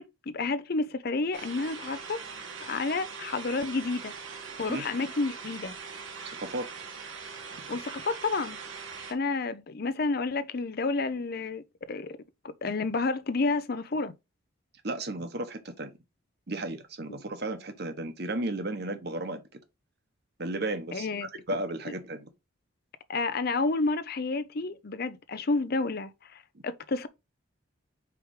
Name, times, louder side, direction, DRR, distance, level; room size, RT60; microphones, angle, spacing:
voice 1, 0.0-2.2 2.6-4.1 4.6-5.7 7.7-8.6 9.1-12.2 12.4-14.1 20.9-21.3 23.1-27.1, left 3 dB, 50° left, 0.5 m, -30 dB
sound 1, 1.3-9.1, right 5 dB, 70° right, 1.6 m, -41 dB
voice 2, 6.2-6.7 14.8-15.9 16.5-19.4 20.4-22.3, right 2 dB, 50° right, 1.1 m, -34 dB
4.8 x 4.7 x 4.8 m
head